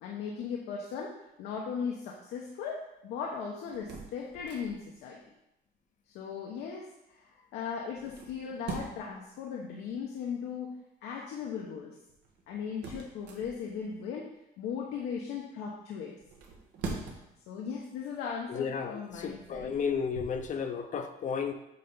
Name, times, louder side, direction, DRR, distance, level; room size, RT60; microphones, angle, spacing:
voice 1, 0.0-5.2 6.1-10.7 11.0-11.9 12.5-14.3 14.6-16.1 17.5-19.8, left 6 dB, 85° left, -1 dB, 1.0 m, -38 dB
sound 1, 3.6-5.0 7.9-9.2 12.1-13.9 16.2-17.4 18.0-18.2 18.9-20.5, right 4 dB, 85° right, 1.4 m, -43 dB
voice 2, 18.5-21.5, left 6 dB, 45° left, 8 dB, 0.7 m, -33 dB
8.1 x 3.4 x 5.5 m, 0.86 s
cardioid pair, 110°, 17 cm